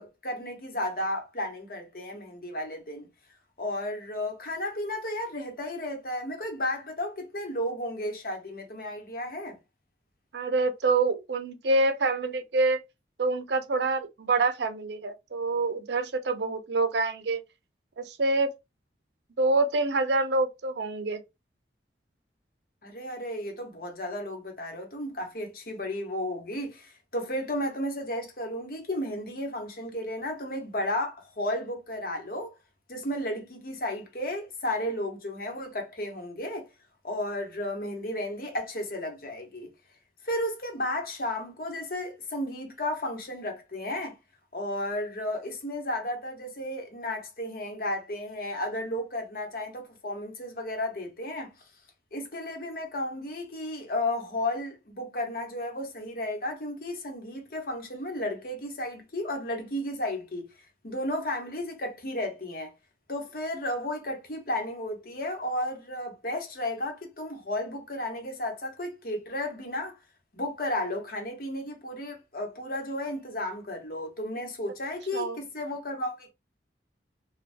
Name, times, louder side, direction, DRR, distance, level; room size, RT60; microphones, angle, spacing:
voice 1, 0.0-3.1 3.6-9.6 22.8-32.5 32.9-36.7 37.0-39.7 40.2-44.1 44.5-51.5 52.1-60.4 60.8-62.7 63.1-70.0 70.3-76.3, left 1 dB, 55° left, 1.0 m, -33 dB
voice 2, 10.3-12.8 13.2-17.4 18.0-18.5 19.4-21.2 75.1-75.4, right 3 dB, 75° right, 0.5 m, -26 dB
3.3 x 2.2 x 2.5 m
head